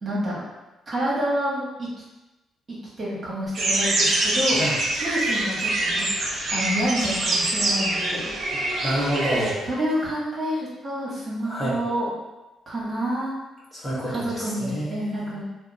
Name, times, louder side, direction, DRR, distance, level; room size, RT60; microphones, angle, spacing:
voice 1, 0.0-0.4 0.9-1.9 2.7-4.6 5.0-6.1 6.5-8.3 9.7-12.1 12.7-13.3 14.1-15.4, equal, 35° right, -7 dB, 1.2 m, -28 dB
sound 1, 3.5-9.5, right 2 dB, 55° right, 0.7 m, -24 dB
voice 2, 8.8-9.6 11.5-11.8 13.7-15.3, right 1 dB, 20° left, -8 dB, 1.2 m, -28 dB
2.8 x 2.0 x 3.8 m, 1.0 s
cardioid pair, 90°, 0 cm